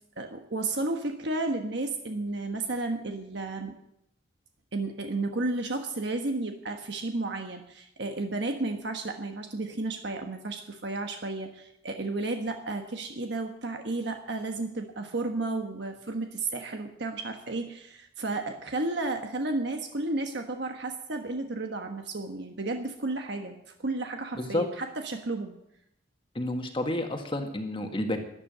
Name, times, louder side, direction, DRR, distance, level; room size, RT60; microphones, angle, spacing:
voice 1, 0.2-3.8 4.7-25.6, right 2 dB, 65° right, 4 dB, 1.3 m, -32 dB
voice 2, 26.3-28.2, left 1 dB, 30° left, 5 dB, 1.7 m, -30 dB
12.5 x 11.0 x 7.9 m, 0.78 s
head